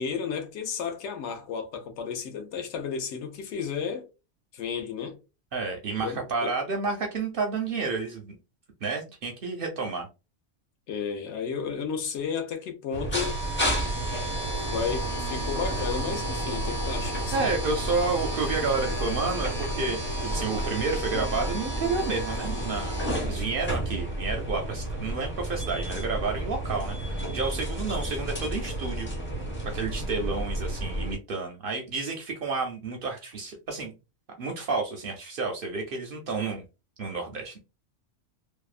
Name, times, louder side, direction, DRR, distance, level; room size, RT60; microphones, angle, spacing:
voice 1, 0.0-4.1 4.5-5.2 6.0-6.5 10.9-13.4 14.7-17.5, left 6 dB, 70° left, 0.9 m, -33 dB
voice 2, 5.5-8.4 8.8-10.1 17.3-29.1 29.7-33.9 34.4-36.6 37.0-37.6, right 4 dB, 60° right, 0.6 m, -30 dB
sound 1, 12.9-31.1, right 1 dB, 15° left, 0.5 m, -31 dB
2.7 x 2.0 x 2.4 m
omnidirectional pair, 1.3 m